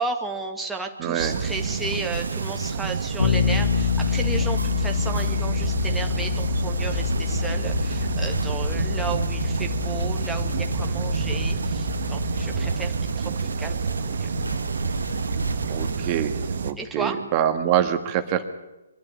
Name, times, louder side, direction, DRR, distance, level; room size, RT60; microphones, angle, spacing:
voice 1, 0.0-13.8 14.0-14.3 16.8-17.2, right 3 dB, 5° right, 1 dB, 1.7 m, -33 dB
voice 2, 1.0-1.4 15.7-16.3 16.6-18.5, right 10 dB, 30° right, 7 dB, 1.6 m, -25 dB
sound 1, 1.2-16.7, right 5 dB, 55° right, 1.2 m, -29 dB
sound 2, 1.8-16.1, right 1 dB, 80° right, 1.8 m, -34 dB
Bass guitar, 3.2-13.0, left 8 dB, 70° left, 1.7 m, -27 dB
23.5 x 12.0 x 9.9 m, 1.0 s
figure-of-eight pair, 130°, 0 cm